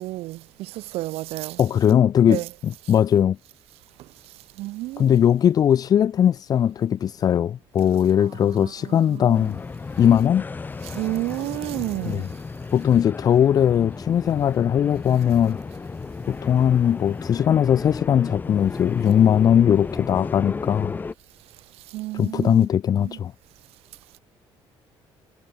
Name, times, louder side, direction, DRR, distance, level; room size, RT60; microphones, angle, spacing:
voice 1, 0.0-1.6 2.3-2.5 4.6-5.1 8.4-9.5 10.8-12.3 21.9-22.6 23.0-23.2, right 18 dB, 80° right, 0.5 m, -31 dB
voice 2, 1.6-3.4 5.0-9.6 10.0-10.4 12.0-12.3 12.7-15.6 16.3-21.0 22.1-23.3, left 9 dB, 40° left, 0.7 m, -19 dB
sound 1, 9.3-21.1, left 4 dB, 20° left, 1.9 m, -34 dB
cardioid pair, 165°, 10 cm